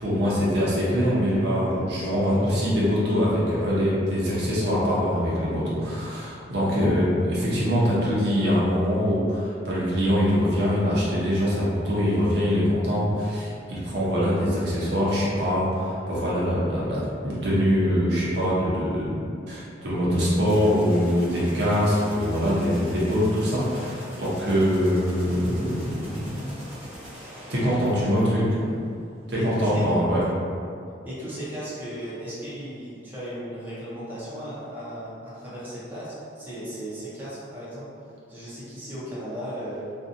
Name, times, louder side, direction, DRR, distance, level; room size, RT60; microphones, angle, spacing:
voice 1, 0.0-19.1 19.5-26.4 27.5-28.6 29.3-30.2, equal, 60° right, -7 dB, 0.7 m, -23 dB
sound 1, 20.4-29.1, equal, 35° right, 0.8 m, -42 dB
voice 2, 29.3-29.9 31.0-39.9, equal, 10° right, -11 dB, 0.6 m, -36 dB
2.6 x 2.2 x 2.5 m, 2.4 s
head